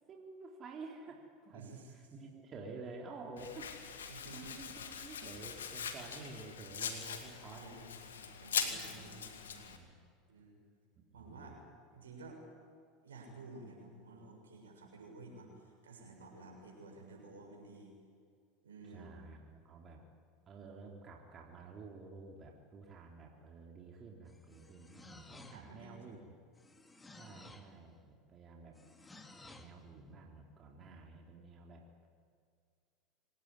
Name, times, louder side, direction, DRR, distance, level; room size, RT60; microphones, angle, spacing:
voice 1, 0.1-7.6 8.6-10.0 11.1-11.6 15.5-15.6 18.8-20.0 20.5-26.4 27.1-28.8 29.4-31.8, right 3 dB, 35° right, 0 dB, 3.8 m, -51 dB
voice 2, 1.5-1.9 4.1-4.6 7.6-9.2 10.3-10.6 11.1-11.6 11.9-12.4 13.0-17.9 18.6-19.1 24.9-26.2, right 3 dB, 85° right, 1 dB, 6.9 m, -53 dB
Domestic sounds home sounds, 3.4-9.8, left 7 dB, 80° left, 2.4 m, -42 dB
sound 1, 24.3-25.9 26.5-27.8 28.7-29.8, left 2 dB, 15° left, 2.3 m, -56 dB
25.5 x 18.5 x 10.0 m, 2.2 s
hypercardioid pair, 80°, 0 cm